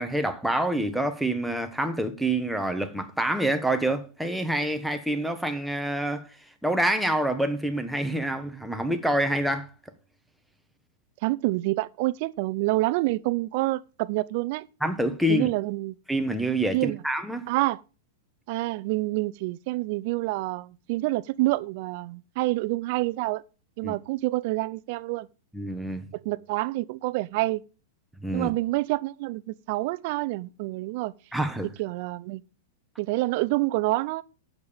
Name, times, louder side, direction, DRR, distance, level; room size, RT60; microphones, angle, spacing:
voice 1, 0.0-6.3 6.6-9.7 14.8-15.5 16.1-17.5 23.8-24.0 25.5-26.1 28.2-28.5 31.3-31.7, right 1 dB, ahead, 1.1 m, -27 dB
voice 2, 11.2-14.7 15.3-15.9 16.7-17.0 17.5-17.8 18.5-23.4 23.8-25.3 26.2-27.6 28.3-31.1 31.8-32.4 33.0-34.2, right 20 dB, 50° right, 0.5 m, -27 dB
9.2 x 7.3 x 5.1 m
supercardioid pair, 145°, 0 cm